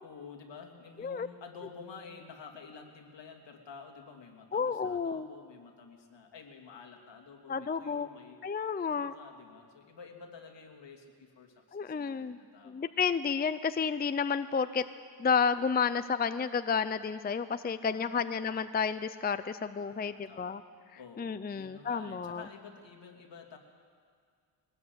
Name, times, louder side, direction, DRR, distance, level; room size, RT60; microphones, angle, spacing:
voice 1, 0.0-8.4 8.9-13.0 17.9-18.2 19.8-20.6 21.0-23.6, left 5 dB, 70° left, 2 dB, 2.9 m, -50 dB
voice 2, 4.5-5.3 7.5-8.1 8.4-9.1 11.7-12.4 12.6-14.9 15.2-20.6 21.2-22.4, left 6 dB, 20° left, 12 dB, 0.5 m, -31 dB
22.0 x 19.5 x 8.0 m, 2.1 s
wide cardioid pair, 130°, 45 cm